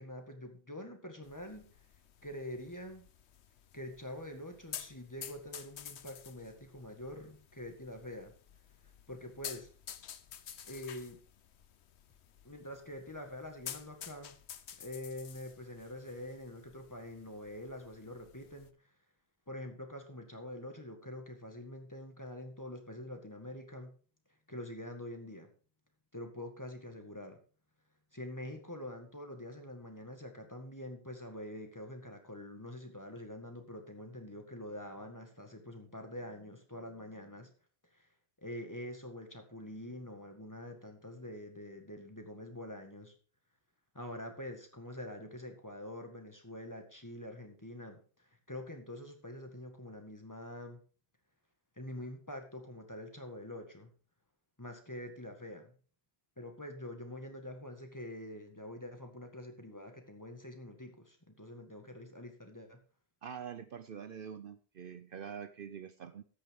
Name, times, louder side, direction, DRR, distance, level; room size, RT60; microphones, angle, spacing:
voice 1, 0.0-1.7 2.2-3.1 3.7-8.3 9.1-9.7 10.7-11.2 12.4-14.3 14.8-18.7 19.5-23.9 24.5-25.5 26.1-27.4 28.1-37.5 37.9-38.1 38.4-43.1 43.9-50.8 51.8-53.9 54.6-55.7 56.4-62.8, left 1 dB, 15° left, 5 dB, 1.8 m, -45 dB
sound 1, 1.2-18.7, left 9 dB, 90° left, 1.1 m, -51 dB
voice 2, 63.2-66.2, right 7 dB, 60° right, 11 dB, 0.8 m, -45 dB
13.0 x 9.1 x 3.7 m, 0.39 s
omnidirectional pair, 1.1 m